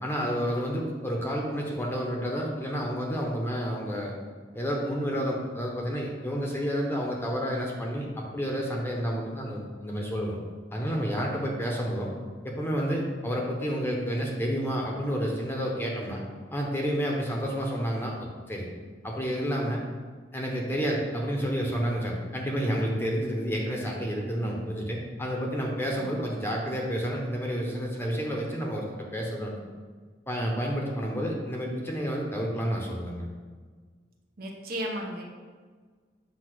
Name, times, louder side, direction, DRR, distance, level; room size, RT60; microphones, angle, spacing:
voice 1, 0.0-4.1 4.5-10.4 10.7-12.1 12.4-16.2 16.5-18.7 19.0-19.8 20.3-28.9 29.1-29.6 30.3-33.2, equal, 15° left, -1 dB, 0.9 m, -30 dB
voice 2, 25.9-26.3 34.4-35.2, equal, 55° right, 0 dB, 1.1 m, -35 dB
8.0 x 2.8 x 6.1 m, 1.5 s
head